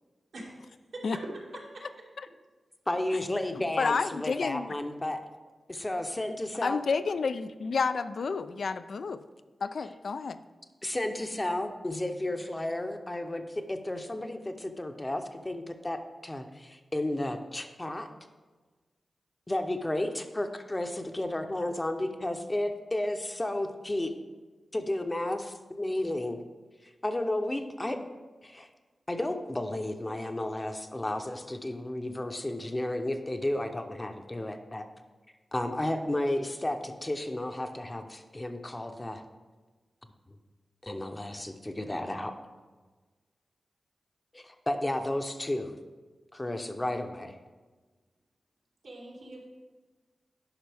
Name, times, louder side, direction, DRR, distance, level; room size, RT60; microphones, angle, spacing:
voice 1, 0.3-1.9 48.8-49.5, right 2 dB, 85° right, -3 dB, 1.9 m, -43 dB
voice 2, 2.9-5.2 5.7-6.8 10.8-18.1 19.5-24.1 24.7-26.4 27.0-28.0 28.4-28.7 29.1-34.9 35.5-39.2 40.8-42.3 44.3-45.7 46.3-47.4, left 1 dB, 25° left, 6 dB, 0.7 m, -32 dB
voice 3, 3.5-4.7 6.6-9.2 9.6-10.4, left 4 dB, 75° left, 12 dB, 0.3 m, -30 dB
10.5 x 5.4 x 3.4 m, 1.3 s
cardioid pair, 60°, 0 cm